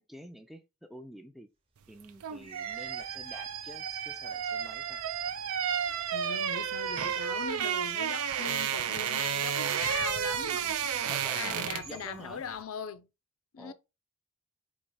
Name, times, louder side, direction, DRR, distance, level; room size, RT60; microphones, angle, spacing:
voice 1, 0.0-1.5 1.9-5.0 11.1-12.4 13.6-13.7, equal, ahead, 0.3 m, -49 dB
sound 1, 2.0-12.0 12.3-12.5, right 8 dB, 85° right, 0.5 m, -32 dB
sound 2, 2.4-7.7 8.1-12.4, right 7 dB, 25° right, 0.7 m, -45 dB
voice 2, 5.8-13.1 13.5-13.7, left 6 dB, 75° left, 0.5 m, -41 dB
4.1 x 2.4 x 4.6 m
head